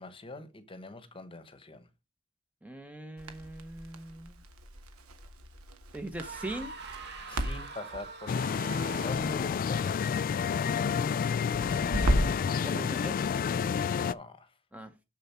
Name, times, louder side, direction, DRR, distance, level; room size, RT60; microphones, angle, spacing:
voice 1, 0.0-1.9 7.3-10.1 14.0-14.5, left 2 dB, 25° left, 1.0 m, -44 dB
voice 2, 2.6-4.4 5.9-6.7 11.5-12.1 12.6-13.2 14.7-14.9, right 1 dB, 5° right, 0.7 m, -41 dB
Crackle, 3.2-12.5, equal, 75° right, 1.2 m, -36 dB
sound 1, 6.2-9.5, right 5 dB, 50° right, 1.4 m, -43 dB
sound 2, 8.3-14.1, left 6 dB, 40° left, 0.3 m, -29 dB
6.9 x 6.7 x 4.3 m
head